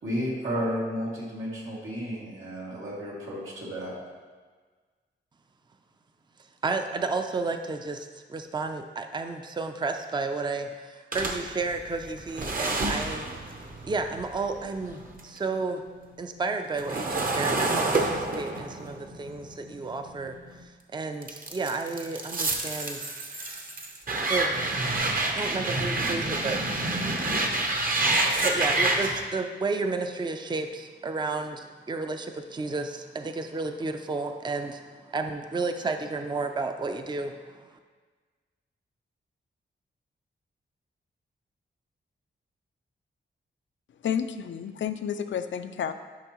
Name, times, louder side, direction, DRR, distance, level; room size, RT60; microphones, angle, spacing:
voice 1, 0.0-3.9, equal, 90° right, -6 dB, 2.2 m, -32 dB
voice 2, 6.6-13.3 13.8-15.8 16.2-20.3 20.9-23.1 24.3-24.8 25.3-26.6 28.4-34.8 35.1-37.4, right 3 dB, 25° right, 6 dB, 0.5 m, -32 dB
sound 1, 11.1-15.4 15.7-20.6 21.2-29.2, right 2 dB, 45° right, 0.9 m, -28 dB
voice 3, 44.0-45.9, left 8 dB, 75° left, 9 dB, 0.4 m, -30 dB
10.0 x 5.4 x 3.0 m, 1.4 s
cardioid pair, 80°, 20 cm